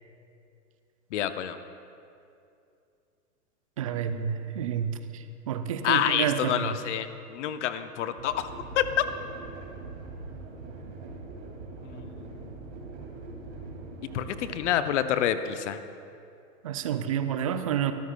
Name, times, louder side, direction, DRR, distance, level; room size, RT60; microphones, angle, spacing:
voice 1, 1.1-1.6 5.8-8.5 8.7-8.9 11.8-12.6 14.1-15.8, left 10 dB, 50° left, 11 dB, 0.8 m, -28 dB
voice 2, 3.8-4.9 5.5-6.7 16.6-17.9, right 8 dB, 25° right, 10 dB, 0.3 m, -29 dB
sound 1, 8.2-14.7, right 3 dB, 45° right, 2.4 m, -42 dB
22.5 x 14.0 x 2.2 m, 2.6 s
figure-of-eight pair, 105°, 47 cm